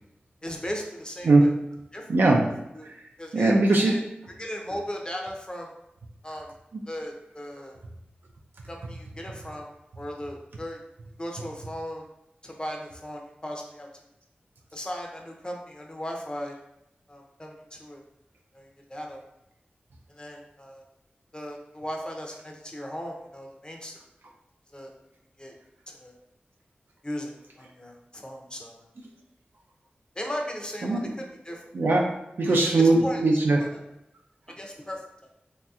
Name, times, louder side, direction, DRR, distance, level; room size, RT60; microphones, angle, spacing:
voice 1, 0.4-1.5 1.9-2.0 2.7-2.9 3.2-4.0 4.4-5.7 6.2-6.5 6.9-7.8 8.7-9.7 10.0-10.8 11.2-12.1 12.4-13.9 14.7-16.5 17.1-18.0 18.5-19.2 20.1-20.8 21.3-24.0 24.7-24.9 25.4-25.5 25.9-26.2 27.0-28.8 30.2-31.6 32.4-33.2 33.6-33.8 34.5-35.0, equal, 25° left, 1 dB, 0.6 m, -37 dB
voice 2, 2.1-2.6 2.9-3.0 3.3-3.9 30.8-31.1 31.7-33.6, right 2 dB, 80° right, -1 dB, 0.4 m, -21 dB
3.2 x 2.7 x 2.4 m, 0.81 s
cardioid pair, 50°, 4 cm